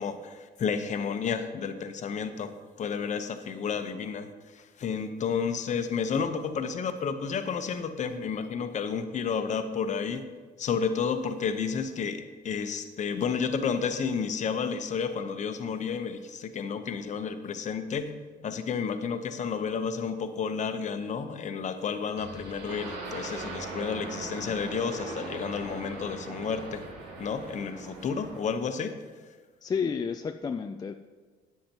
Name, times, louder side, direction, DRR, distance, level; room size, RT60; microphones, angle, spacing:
voice 1, 0.0-2.5 2.8-4.3 4.5-10.2 10.6-18.1 18.4-26.8 27.2-28.9, left 6 dB, 45° left, 8 dB, 1.0 m, -31 dB
sound 1, 22.2-28.5, right 3 dB, 80° right, 2.3 m, -40 dB
voice 2, 29.6-30.9, left 6 dB, 25° left, 7 dB, 0.4 m, -31 dB
13.0 x 9.4 x 3.0 m, 1.5 s
cardioid pair, 110°, 17 cm